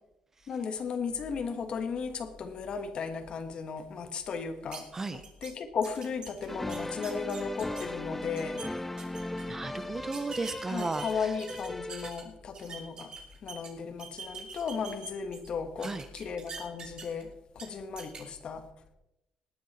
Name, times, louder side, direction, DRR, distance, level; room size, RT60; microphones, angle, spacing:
voice 1, 0.5-4.9 5.1-8.7 10.7-13.1 13.4-18.6, left 5 dB, 45° left, 1.4 m, -35 dB
sound 1, 4.7-4.8 5.2-5.5 5.8-7.9 8.2-8.7 9.0-9.4 10.1-12.2 12.5-13.7 14.0-15.5 15.8-17.2 17.6-17.7 18.0-18.2, right 5 dB, 40° right, 2.9 m, -44 dB
sound 2, 6.5-12.1, left 1 dB, 10° left, 0.4 m, -38 dB
voice 2, 9.5-11.3 15.8-16.0, right 3 dB, 20° right, 0.7 m, -35 dB
19.5 x 9.5 x 4.3 m
cardioid pair, 150°, 2 cm